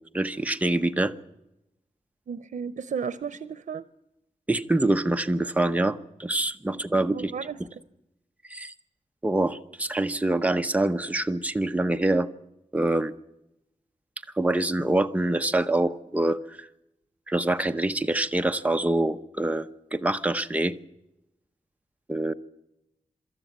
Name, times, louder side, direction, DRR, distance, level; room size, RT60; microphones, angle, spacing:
voice 1, 0.1-1.1 4.5-7.3 8.5-8.7 9.2-12.3 12.7-13.1 14.4-16.7 17.3-20.7 22.1-22.3, right 2 dB, 10° right, 7 dB, 0.8 m, -25 dB
voice 2, 2.3-3.8 6.7-7.7, right 6 dB, 90° right, 14 dB, 0.7 m, -34 dB
24.0 x 13.0 x 9.3 m, 0.91 s
wide cardioid pair, 125°, 13 cm